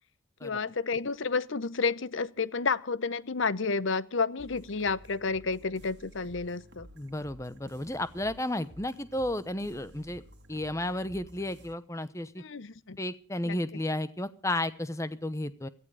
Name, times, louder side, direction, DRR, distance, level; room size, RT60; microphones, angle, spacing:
voice 1, 0.4-6.9 12.4-13.0 13.4-13.6, left 4 dB, 65° left, 0.8 m, -30 dB
sound 1, 4.4-11.7, right 1 dB, 55° right, 2.3 m, -53 dB
voice 2, 7.0-10.2 10.5-12.4 13.0-15.7, left 1 dB, 15° left, 0.9 m, -33 dB
17.5 x 14.0 x 4.8 m
head